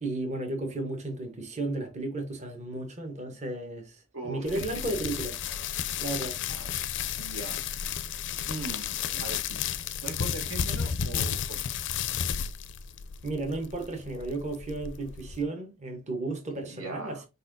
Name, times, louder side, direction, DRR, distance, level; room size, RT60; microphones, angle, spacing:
voice 1, 0.0-5.4 6.0-6.4 13.2-17.3, right 2 dB, 30° right, 1.0 m, -34 dB
voice 2, 4.1-4.7 6.5-6.7 7.2-7.6 8.5-9.6 10.0-11.6 16.5-17.2, right 3 dB, 70° right, 1.1 m, -40 dB
sound 1, 4.5-15.4, left 8 dB, 55° left, 0.4 m, -33 dB
4.4 x 4.1 x 2.6 m
head